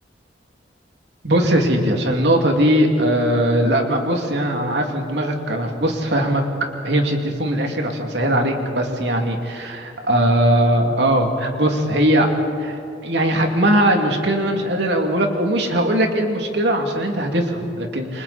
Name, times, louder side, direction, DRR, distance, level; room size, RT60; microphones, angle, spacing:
voice 1, 1.2-6.4 6.8-12.3 12.6-18.2, right 1 dB, 70° right, 2 dB, 2.8 m, -20 dB
29.5 x 24.5 x 4.4 m, 2.6 s
head